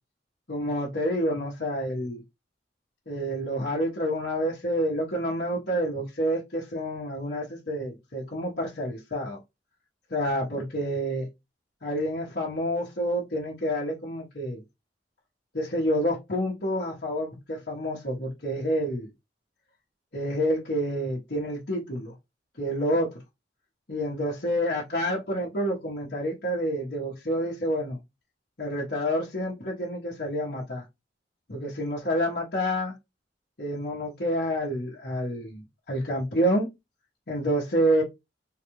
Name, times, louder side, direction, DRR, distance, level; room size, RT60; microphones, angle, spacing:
voice 1, 0.5-2.2 3.1-9.4 10.1-11.3 11.8-14.6 15.5-19.1 20.1-22.1 22.6-23.2 23.9-28.0 28.6-30.8 31.5-32.9 33.6-36.7 37.3-38.0, equal, 60° left, 1.3 m, -28 dB
3.9 x 2.5 x 3.0 m
head